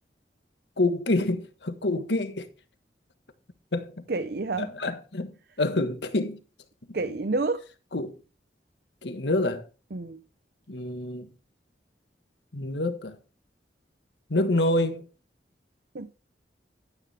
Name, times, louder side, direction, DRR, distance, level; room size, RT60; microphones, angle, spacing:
voice 1, 0.8-2.5 3.7-4.0 4.6-6.4 7.9-8.2 9.0-9.6 10.7-11.3 12.5-13.2 14.3-15.0, left 2 dB, 75° left, 1.5 m, -27 dB
voice 2, 4.1-4.7 6.9-7.6 9.9-10.2 15.9-16.1, right 3 dB, 60° right, 0.7 m, -29 dB
12.0 x 9.5 x 3.5 m
head